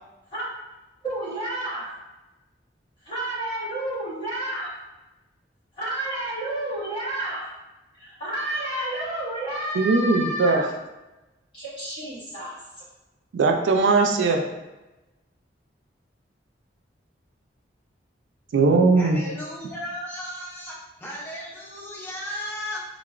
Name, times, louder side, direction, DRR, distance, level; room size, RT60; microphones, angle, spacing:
voice 1, 1.0-1.9 3.0-4.7 5.8-7.4 8.0-10.6 11.5-12.5, right 1 dB, 30° left, -9 dB, 1.1 m, -30 dB
voice 2, 9.7-10.6 13.3-14.4 18.5-19.2, right 3 dB, 85° right, 3 dB, 0.4 m, -19 dB
voice 3, 19.0-22.8, left 1 dB, 10° left, -4 dB, 0.5 m, -35 dB
3.4 x 2.0 x 2.4 m, 1.1 s
head